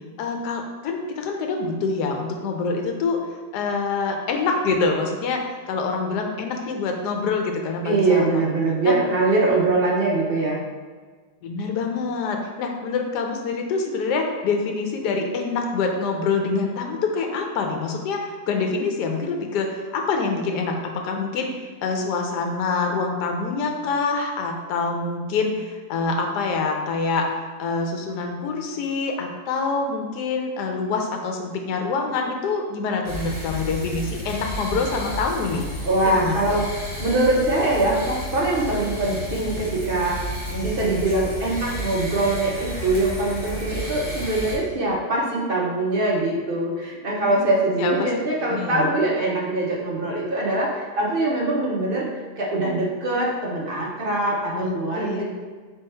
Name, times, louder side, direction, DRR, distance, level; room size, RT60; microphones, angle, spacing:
voice 1, 0.2-3.2 3.5-8.5 8.8-9.0 11.4-21.5 21.8-27.3 27.6-35.7 36.1-36.6 47.2-47.4 47.8-48.1 48.5-48.9 54.5-55.2, left 4 dB, 85° left, 3 dB, 1.2 m, -26 dB
voice 2, 7.8-10.6 35.8-52.1 52.4-55.2, right 2 dB, 45° right, -3 dB, 0.7 m, -23 dB
sound 1, 33.0-44.6, equal, 20° left, 0.9 m, -32 dB
3.6 x 3.3 x 4.3 m, 1.4 s
omnidirectional pair, 1.7 m